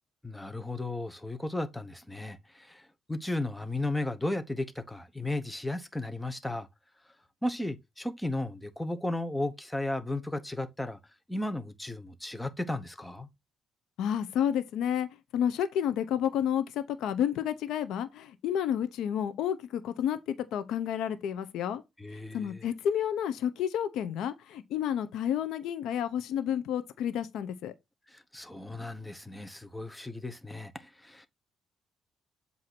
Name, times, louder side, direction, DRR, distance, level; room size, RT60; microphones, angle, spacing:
voice 1, 0.2-6.7 7.4-11.0 11.3-13.3 22.0-22.7 28.1-31.3, left 2 dB, 5° left, 0.9 m, -35 dB
voice 2, 14.0-15.1 15.3-21.8 22.1-27.7, left 9 dB, 85° left, 0.7 m, -30 dB
7.8 x 2.7 x 6.0 m
cardioid pair, 110°, 0 cm